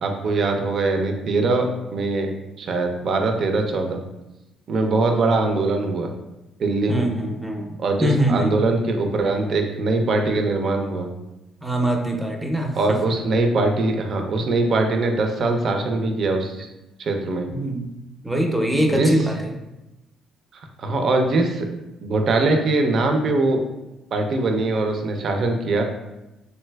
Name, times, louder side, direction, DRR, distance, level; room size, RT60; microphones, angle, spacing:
voice 1, 0.0-2.3 2.6-4.0 4.7-6.1 6.6-7.1 7.8-11.1 12.8-16.7 17.0-17.5 18.9-19.1 20.5-21.7 22.0-23.6 24.1-25.8, right 2 dB, 60° right, 4 dB, 0.4 m, -22 dB
voice 2, 6.9-8.5 11.6-13.0 17.5-17.8 18.2-19.5, right 1 dB, 10° right, 2 dB, 0.5 m, -23 dB
3.3 x 2.7 x 2.2 m, 0.97 s
supercardioid pair, 70°, 0 cm